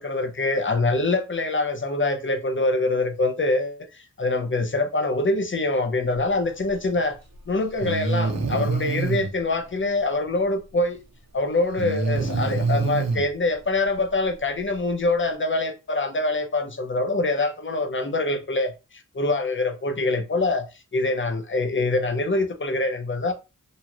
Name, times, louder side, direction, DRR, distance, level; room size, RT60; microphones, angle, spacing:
voice 1, 0.0-7.2 7.5-11.0 11.3-18.7 19.1-20.7 20.9-23.3, left 2 dB, 35° left, 0.7 m, -24 dB
Breathing, 6.9-7.0 7.8-9.3 11.8-13.2, right 3 dB, 50° right, 0.8 m, -25 dB
2.7 x 2.5 x 3.0 m
cardioid pair, 45°, 35 cm